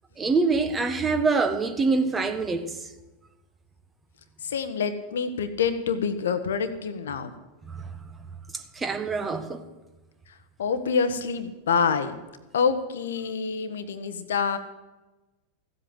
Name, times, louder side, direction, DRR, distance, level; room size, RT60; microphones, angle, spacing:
voice 1, 0.2-2.9 7.6-7.9 8.5-9.6, right 4 dB, 15° right, 1.3 m, -25 dB
voice 2, 4.4-7.3 10.6-12.1 12.5-14.6, left 6 dB, 65° left, 1.1 m, -26 dB
15.0 x 8.1 x 7.9 m
figure-of-eight pair, 90°, 0 cm